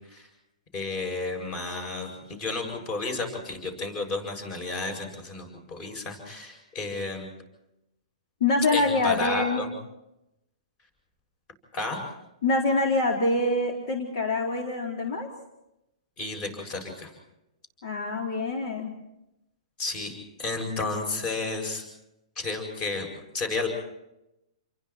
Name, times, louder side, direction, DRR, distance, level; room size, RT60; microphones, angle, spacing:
voice 1, 0.7-7.3 8.7-9.7 11.7-12.0 16.2-17.1 19.8-20.1 20.4-21.8 22.4-23.1 23.3-23.7, left 3 dB, 25° left, 4 dB, 7.5 m, -32 dB
voice 2, 8.4-9.6 12.4-15.3 17.8-18.9, left 2 dB, 50° left, 1 dB, 4.1 m, -25 dB
29.5 x 23.0 x 4.5 m, 0.88 s
hypercardioid pair, 160°, 3 cm